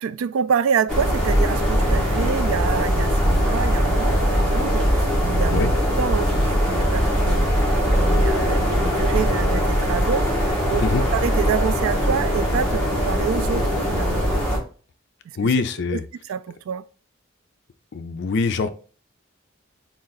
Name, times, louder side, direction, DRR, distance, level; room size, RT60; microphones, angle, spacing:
voice 1, 0.0-5.7 6.0-10.9 11.1-14.3 15.3-15.4 15.9-16.0 16.2-16.8, right 7 dB, 90° right, 0.3 m, -27 dB
sound 1, 0.9-14.6, equal, 5° left, 1.2 m, -21 dB
voice 2, 15.4-16.0 17.9-18.7, left 4 dB, 60° left, 0.4 m, -23 dB
3.7 x 2.5 x 3.9 m
head